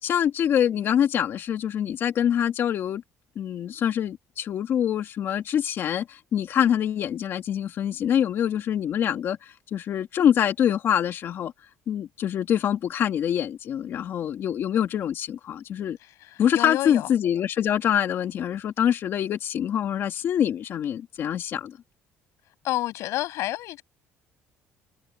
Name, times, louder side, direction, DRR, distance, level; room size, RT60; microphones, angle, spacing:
voice 1, 0.0-3.0 3.4-11.5 11.9-16.0 16.4-21.8, left 9 dB, 50° left, 2.6 m, -25 dB
voice 2, 16.0-17.1 22.6-23.8, left 16 dB, 70° left, 7.7 m, -30 dB
cardioid pair, 145°, 5 cm